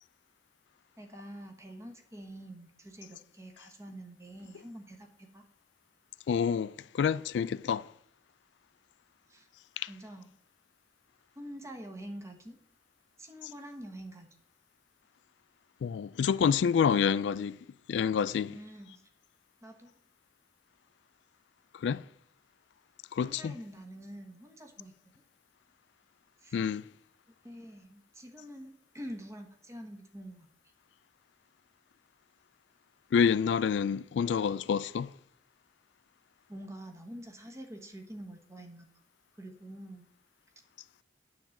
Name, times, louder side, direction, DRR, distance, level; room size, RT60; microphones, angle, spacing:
voice 1, 1.0-5.4 9.3-9.5 9.9-10.3 11.3-12.6 13.2-14.3 18.5-19.0 19.6-19.9 23.2-24.9 26.4-26.6 27.4-30.5 36.5-38.9 39.3-40.1, right 1 dB, 15° right, 1.2 m, -46 dB
voice 2, 6.3-7.9 9.8-9.9 15.8-17.6 17.9-18.5 21.8-22.0 23.1-23.5 26.5-26.8 33.1-35.1, left 7 dB, 90° left, 0.3 m, -28 dB
9.3 x 3.8 x 7.2 m
head